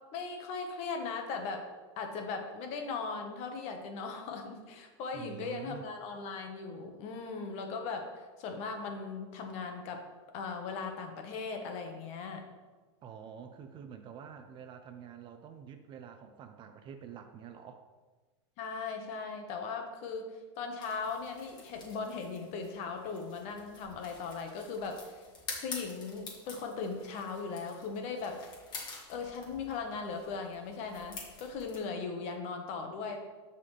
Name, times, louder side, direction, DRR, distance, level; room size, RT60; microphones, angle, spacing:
voice 1, 0.1-1.6 2.0-10.0 10.3-12.4 18.6-25.2 25.6-28.4 29.1-33.2, left 4 dB, 45° left, 4 dB, 1.3 m, -38 dB
voice 2, 5.1-5.9 13.0-17.8, right 8 dB, 30° right, 7 dB, 0.6 m, -47 dB
sound 1, 20.8-31.8, left 4 dB, 30° left, 1.8 m, -48 dB
11.5 x 4.1 x 3.3 m, 1.3 s
supercardioid pair, 125°, 15 cm